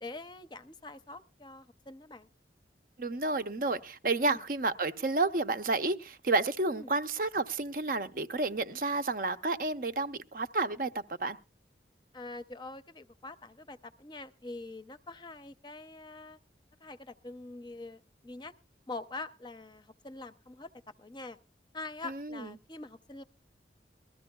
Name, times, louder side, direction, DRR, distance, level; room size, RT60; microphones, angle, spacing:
voice 1, 0.0-2.3 4.3-4.4 6.7-6.9 12.1-16.4 16.8-18.5 18.9-20.7 21.0-21.4 21.7-23.2, left 2 dB, 25° left, 0.6 m, -44 dB
voice 2, 3.0-11.4 22.0-22.5, right 3 dB, 50° right, 0.7 m, -31 dB
20.5 x 13.5 x 2.3 m
head